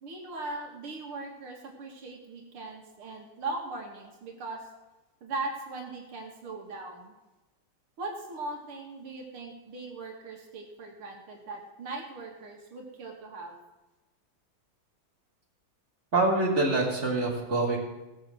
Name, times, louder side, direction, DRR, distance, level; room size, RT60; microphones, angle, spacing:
voice 1, 0.0-4.7 5.2-7.1 8.0-13.5, right 3 dB, 80° right, 0 dB, 2.6 m, -39 dB
voice 2, 16.1-17.8, right 2 dB, 30° right, -3 dB, 3.6 m, -25 dB
17.0 x 6.7 x 7.5 m, 1.1 s
omnidirectional pair, 2.3 m